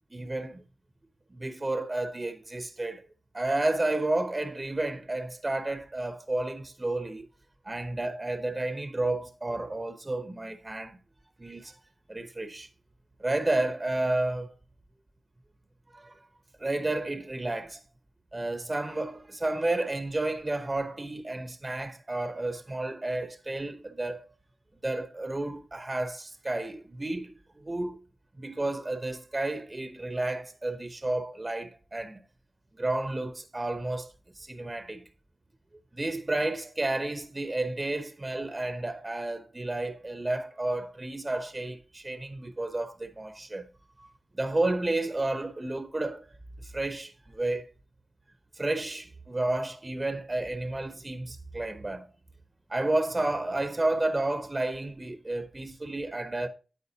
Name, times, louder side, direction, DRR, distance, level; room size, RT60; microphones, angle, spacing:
voice 1, 0.1-0.6 1.3-3.1 3.3-7.3 7.6-11.0 11.4-11.8 12.1-12.7 13.2-14.5 15.9-16.2 16.6-17.8 18.3-24.2 24.8-28.0 28.4-32.2 32.8-35.1 35.9-43.7 44.0-44.1 44.3-46.3 46.6-47.7 48.5-52.1 52.7-56.5, right 2 dB, 30° right, 0.9 m, -31 dB
9.7 x 8.6 x 2.8 m
cardioid pair, 55°, 0 cm